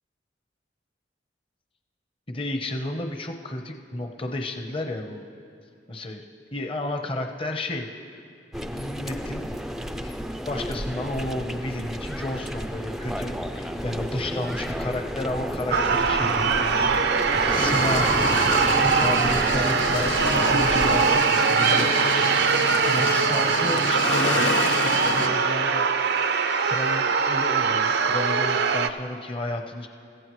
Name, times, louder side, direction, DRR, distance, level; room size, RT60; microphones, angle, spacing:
voice 1, 2.3-5.3 5.9-6.2 6.5-7.9 8.7-9.5 10.0-10.2 10.5-18.1 18.8-22.0 22.9-26.1 26.6-29.9, left 1 dB, 30° left, 4 dB, 0.9 m, -32 dB
sound 1, 8.5-21.2, equal, ahead, 0.5 m, -31 dB
sound 2, 15.7-28.9, right 5 dB, 60° right, 0.6 m, -22 dB
sound 3, 17.5-25.3, left 4 dB, 80° left, 1.0 m, -29 dB
29.0 x 15.0 x 3.1 m, 2.6 s
head